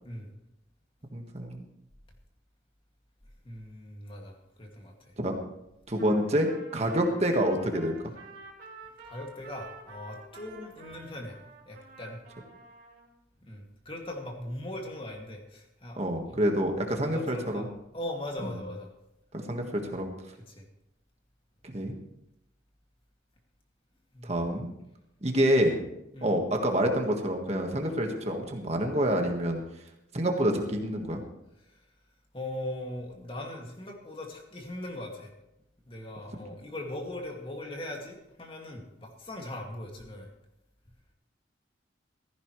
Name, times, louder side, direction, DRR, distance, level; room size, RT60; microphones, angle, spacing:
voice 1, 1.1-1.6 5.2-5.3 5.9-7.9 16.0-17.6 18.4-18.5 19.3-20.1 21.6-21.9 24.2-24.7 25.2-25.8 26.2-29.6 30.1-31.2, equal, 35° right, 3 dB, 1.5 m, -27 dB
voice 2, 3.4-5.1 6.0-6.1 9.0-11.4 11.7-12.2 13.5-16.0 16.3-16.5 16.9-17.7 17.9-18.9 20.5-20.7 24.1-24.3 26.1-26.3 31.7-31.8 32.3-35.3 35.8-40.3, left 1 dB, 30° left, 0 dB, 2.3 m, -40 dB
Trumpet, 6.0-13.1, right 3 dB, 50° right, 4.0 m, -50 dB
15.5 x 15.0 x 3.2 m, 0.85 s
head